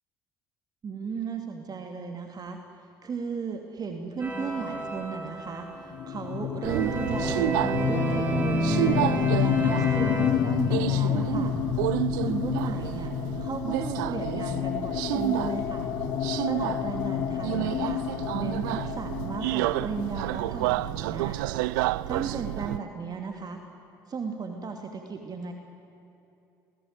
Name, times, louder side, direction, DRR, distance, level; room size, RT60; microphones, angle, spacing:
voice 1, 0.8-2.6 3.0-11.5 12.1-13.1 13.4-15.9 16.5-18.0 18.3-21.4 22.0-23.6 24.1-25.5, right 5 dB, 40° right, 4 dB, 2.7 m, -35 dB
sound 1, 4.2-6.2 6.6-10.3, right 2 dB, 20° right, 6.5 m, -31 dB
sound 2, 5.9-21.5, left 12 dB, 50° left, 0.5 m, -30 dB
Subway metro underground, 6.6-22.8, right 18 dB, 75° right, 0.5 m, -30 dB
26.0 x 20.0 x 9.7 m, 2.8 s
hypercardioid pair, 60°, 10 cm